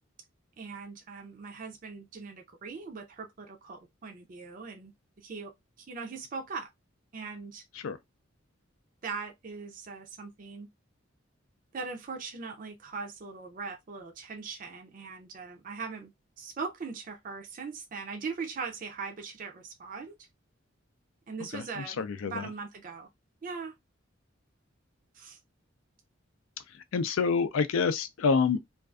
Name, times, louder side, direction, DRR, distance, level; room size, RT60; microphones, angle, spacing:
voice 1, 0.6-4.9 5.2-5.5 5.8-6.7 7.1-7.6 9.0-10.7 11.7-16.1 16.4-20.2 21.3-23.1 23.4-23.7 25.1-25.4, right 4 dB, 40° right, 0.4 m, -40 dB
voice 2, 21.5-22.5 26.7-28.6, left 5 dB, 85° left, 0.4 m, -28 dB
2.5 x 2.3 x 2.2 m
head